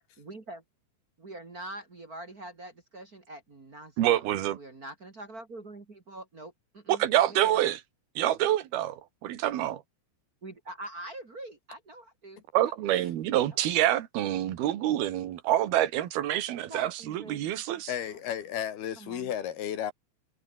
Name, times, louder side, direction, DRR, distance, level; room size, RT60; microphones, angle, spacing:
voice 1, 0.2-0.6 1.2-7.6 10.4-12.4 13.5-13.6 16.7-18.2 18.9-19.3, right 2 dB, 35° right, 1.4 m, -44 dB
voice 2, 4.0-4.6 6.9-7.8 8.2-9.8 12.5-17.9, right 13 dB, 60° right, 3.3 m, -27 dB
voice 3, 17.9-19.9, left 10 dB, 60° left, 3.7 m, -33 dB
omnidirectional pair, 5.7 m